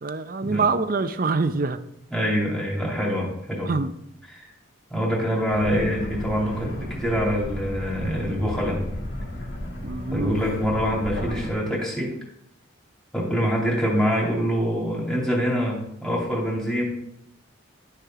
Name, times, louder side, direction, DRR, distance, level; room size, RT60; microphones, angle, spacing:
voice 1, 0.0-1.8 3.6-3.9 9.8-10.4, right 4 dB, 45° right, 11 dB, 0.6 m, -25 dB
voice 2, 2.1-3.7 4.3-4.5 4.9-8.8 10.1-12.2 13.1-16.8, equal, 5° left, -4 dB, 2.4 m, -25 dB
sound 1, 5.5-11.5, left 1 dB, 60° left, 1.8 m, -33 dB
11.0 x 6.7 x 3.7 m, 0.78 s
head